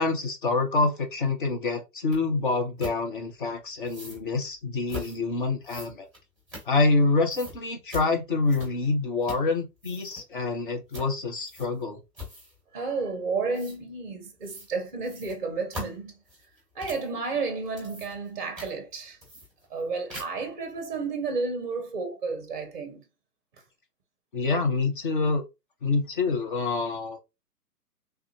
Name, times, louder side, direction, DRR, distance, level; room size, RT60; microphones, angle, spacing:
voice 1, 0.0-6.1 6.7-12.0 24.3-25.4 25.8-27.2, left 3 dB, 30° left, 0.7 m, -26 dB
sound 1, 2.1-2.2 2.8-3.0 3.8-4.2 4.9-5.2 5.6-7.0 7.3-7.6 7.9-8.1 8.5-8.9 9.2-9.5 9.8-10.2 10.9-11.1 11.4-11.8 12.1-12.6 13.5-13.8 14.4-14.7 15.0-17.1 17.6-18.3 18.6-18.7 19.2-19.8 20.1-20.5, left 1 dB, ahead, 1.1 m, -41 dB
voice 2, 12.7-16.1 16.8-19.2 19.7-23.0, right 4 dB, 30° right, 0.6 m, -31 dB
3.4 x 2.4 x 2.8 m
figure-of-eight pair, 130°, 50 cm